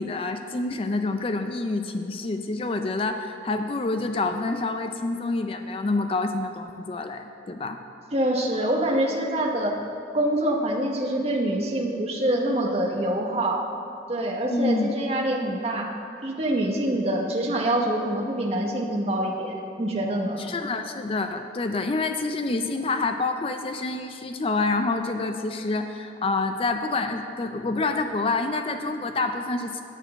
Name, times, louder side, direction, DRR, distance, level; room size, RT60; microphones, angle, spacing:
voice 1, 0.0-7.8 14.4-14.9 20.4-29.8, left 3 dB, 30° left, 6 dB, 0.4 m, -27 dB
voice 2, 8.1-9.8 10.1-13.7 14.1-15.9 16.2-20.4, right 1 dB, 35° right, 1 dB, 0.9 m, -25 dB
9.0 x 6.4 x 7.5 m, 2.7 s
head